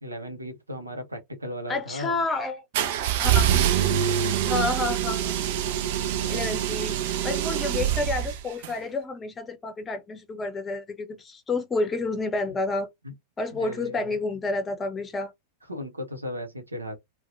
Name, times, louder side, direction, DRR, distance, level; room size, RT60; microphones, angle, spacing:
voice 1, 0.0-2.2 6.2-7.0 13.0-13.1 13.5-14.2 15.7-17.0, left 1 dB, 80° right, 0.7 m, -37 dB
voice 2, 1.7-2.6 3.2-3.5 4.4-5.4 6.3-12.9 13.4-15.3, left 3 dB, 20° left, 0.7 m, -30 dB
sound 1, 2.7-8.7, right 10 dB, 50° right, 0.4 m, -25 dB
2.7 x 2.1 x 2.5 m
figure-of-eight pair, 90°, 0 cm